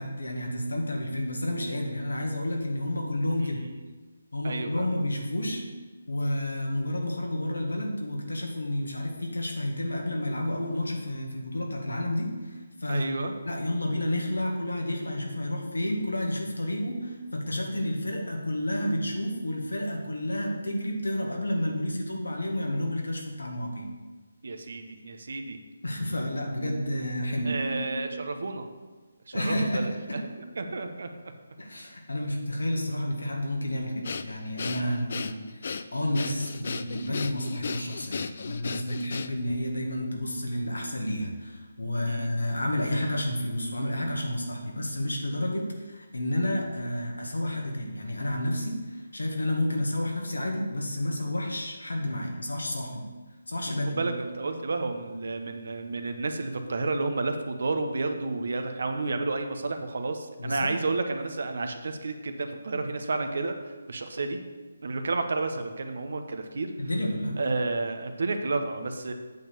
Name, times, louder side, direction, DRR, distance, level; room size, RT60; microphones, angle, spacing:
voice 1, 0.0-3.6 4.3-5.6 6.1-13.1 13.4-23.9 25.8-28.0 29.3-30.2 31.6-53.1 53.5-54.0 60.4-60.7 66.8-67.4, left 1 dB, 90° left, 1 dB, 1.8 m, -30 dB
voice 2, 4.4-4.9 12.9-13.4 24.4-25.6 27.4-28.7 29.3-30.2 30.6-31.1 34.8-35.1 42.0-42.3 53.7-64.4 64.8-66.7 67.4-69.1, right 3 dB, 65° right, 6 dB, 1.0 m, -31 dB
Breathing, 34.0-39.6, left 5 dB, 55° left, 0.4 m, -35 dB
8.3 x 4.4 x 6.8 m, 1.3 s
figure-of-eight pair, 155°, 0 cm